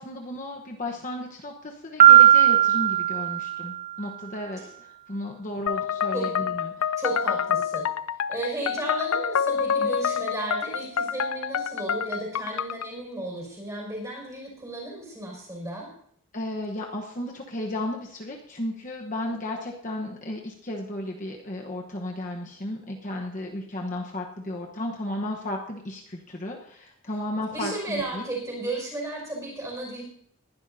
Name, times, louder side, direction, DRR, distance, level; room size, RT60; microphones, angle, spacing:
voice 1, 0.0-7.0 16.3-28.2, left 1 dB, 35° left, 0 dB, 1.0 m, -34 dB
Piano, 2.0-3.9, right 11 dB, 40° right, 1.1 m, -16 dB
sound 1, 5.7-12.9, left 7 dB, 75° left, 0.4 m, -27 dB
voice 2, 7.0-7.9 8.3-15.9 27.5-30.0, right 2 dB, 15° right, -2 dB, 5.6 m, -34 dB
20.0 x 11.5 x 2.7 m, 0.67 s
head